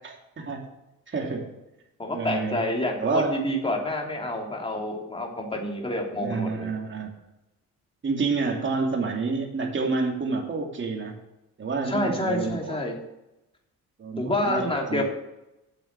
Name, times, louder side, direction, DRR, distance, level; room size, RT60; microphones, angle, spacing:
voice 1, 0.0-0.7 1.1-1.5 2.1-2.6 3.0-3.4 6.2-7.1 8.0-11.1 11.6-12.8 14.0-15.0, right 4 dB, 40° right, 2 dB, 2.7 m, -28 dB
voice 2, 2.0-6.7 11.8-13.0 14.2-15.0, left 1 dB, 20° left, 0 dB, 3.0 m, -28 dB
8.5 x 7.0 x 7.4 m, 0.92 s
cardioid pair, 90°, 30 cm